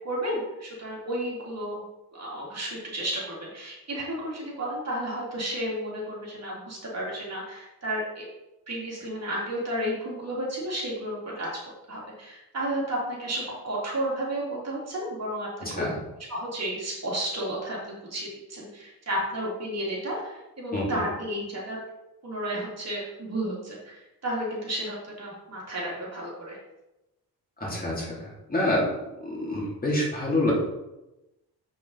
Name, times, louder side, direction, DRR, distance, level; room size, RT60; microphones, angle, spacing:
voice 1, 0.0-1.8 2.1-8.3 8.7-11.5 11.9-15.8 16.3-21.8 22.2-26.6, right 1 dB, 40° right, -4 dB, 2.9 m, -32 dB
voice 2, 15.6-16.0 20.7-21.0 27.6-28.9 29.2-30.5, left 1 dB, 25° left, -5 dB, 3.0 m, -27 dB
7.6 x 6.5 x 4.1 m, 0.96 s
cardioid pair, 110°, 38 cm